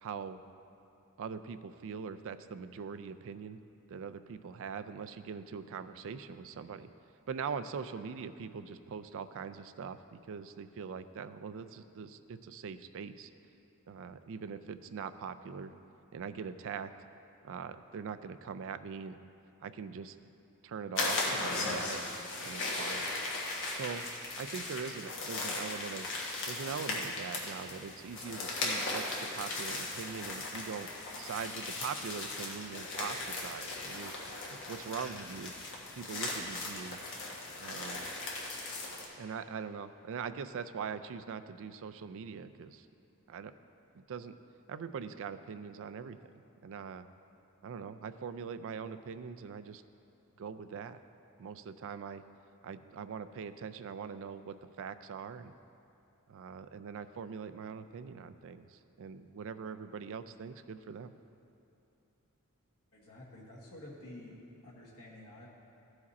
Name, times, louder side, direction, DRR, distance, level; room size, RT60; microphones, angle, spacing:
voice 1, 0.0-0.4 1.2-3.6 3.9-6.9 7.3-13.3 13.9-15.7 16.1-16.9 17.4-19.2 19.6-20.2 20.6-22.0 22.4-23.1 23.7-24.1 24.4-26.1 26.5-30.9 31.2-35.5 35.9-37.0 37.6-38.0 39.2-42.9 43.3-43.5 43.9-44.3 44.7-47.1 47.6-49.8 50.4-51.0 51.4-52.2 52.6-55.5 56.3-61.1, right 6 dB, 60° right, 12 dB, 0.4 m, -42 dB
sound 1, 20.9-39.0, left 2 dB, 55° left, 1.3 m, -37 dB
voice 2, 62.9-64.4 64.6-65.5, left 1 dB, 85° left, -5 dB, 1.5 m, -50 dB
14.5 x 4.9 x 4.2 m, 2.8 s
head